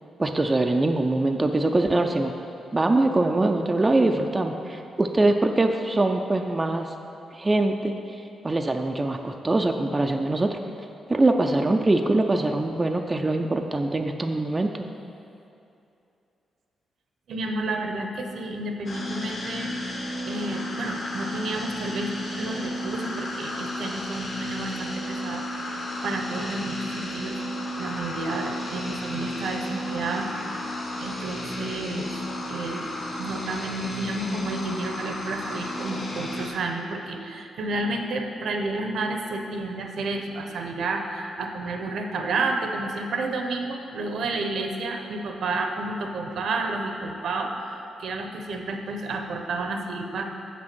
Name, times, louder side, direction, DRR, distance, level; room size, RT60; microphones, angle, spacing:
voice 1, 0.2-2.3 2.7-6.9 7.3-7.9 8.4-10.6 11.1-14.9, right 2 dB, 20° right, 4 dB, 0.4 m, -23 dB
voice 2, 17.3-27.4 27.8-30.7 31.0-32.9 33.2-50.2, right 2 dB, 70° right, 4 dB, 0.8 m, -31 dB
sound 1, 18.9-36.5, left 1 dB, 55° left, 1.6 m, -33 dB
7.7 x 6.2 x 6.0 m, 2.7 s
cardioid pair, 105°, 0 cm